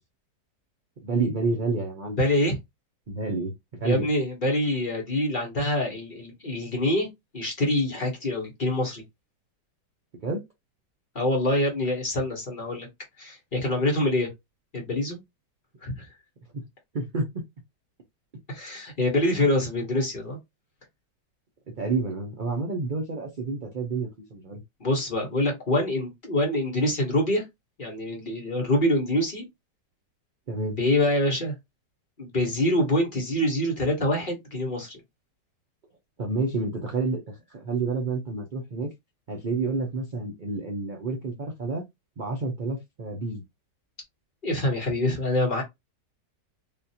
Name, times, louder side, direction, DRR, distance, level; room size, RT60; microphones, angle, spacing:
voice 1, 1.0-2.2 3.1-4.1 10.2-10.4 16.5-16.7 16.9-17.3 19.3-19.5 21.8-24.6 30.5-30.8 36.2-38.9 39.3-41.8 42.2-43.4, right 3 dB, 65° right, 0.5 m, -29 dB
voice 2, 2.2-2.6 3.8-7.1 7.3-9.0 11.1-12.9 13.2-14.3 14.7-15.2 15.8-16.1 18.5-20.4 24.8-27.4 27.8-29.5 30.8-31.5 32.2-35.0 44.4-45.6, left 1 dB, 35° left, 1.0 m, -25 dB
3.6 x 2.4 x 2.8 m
omnidirectional pair, 1.9 m